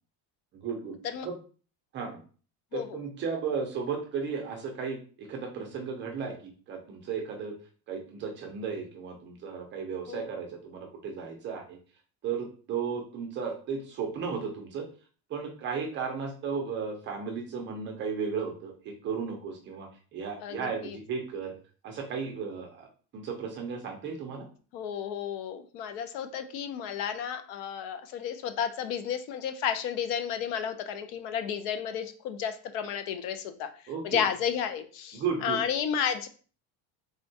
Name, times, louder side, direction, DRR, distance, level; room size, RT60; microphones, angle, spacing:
voice 1, 0.5-1.0 1.2-1.4 1.9-2.2 2.7-7.5 7.9-11.8 12.2-14.8 15.3-21.5 21.8-22.9 23.1-24.5 33.9-34.2 35.1-35.6, right 6 dB, 30° right, 1 dB, 0.4 m, -35 dB
voice 2, 20.4-21.0 24.7-33.7 34.0-36.3, left 8 dB, 75° left, 9 dB, 0.6 m, -32 dB
3.6 x 2.2 x 2.6 m, 0.39 s
cardioid pair, 165°, 42 cm